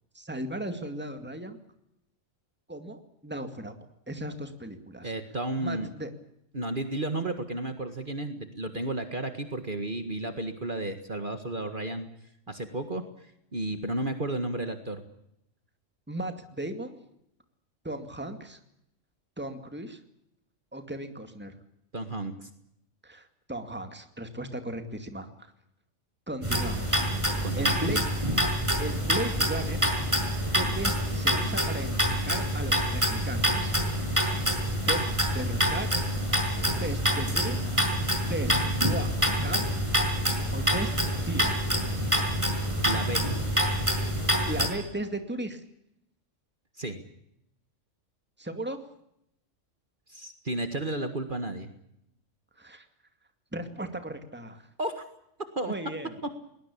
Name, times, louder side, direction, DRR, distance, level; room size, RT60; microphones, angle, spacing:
voice 1, 0.1-1.6 2.7-3.7 4.1-5.1 5.6-6.1 16.1-17.0 17.8-18.6 19.4-20.0 20.7-21.5 23.0-25.3 26.3-27.0 27.6-28.0 28.8-29.8 30.5-33.8 34.9-35.0 35.3-35.9 36.8-37.7 38.3-38.5 38.8-39.2 39.4-39.7 40.5-40.9 41.3-41.7 44.5-45.6 48.4-48.8 52.6-52.9 53.5-54.6 55.7-56.1, right 1 dB, 10° right, 7 dB, 2.3 m, -36 dB
voice 2, 5.0-5.9 6.5-12.1 12.5-15.0 21.9-22.5 27.4-27.9 42.8-43.3 46.8-47.0 50.1-51.7 54.8-55.0 55.6-55.7 56.2-56.3, right 2 dB, 40° right, 7 dB, 1.9 m, -33 dB
sound 1, 26.4-44.7, equal, 25° right, 5.9 m, -26 dB
21.5 x 20.5 x 8.5 m, 0.78 s
omnidirectional pair, 1.3 m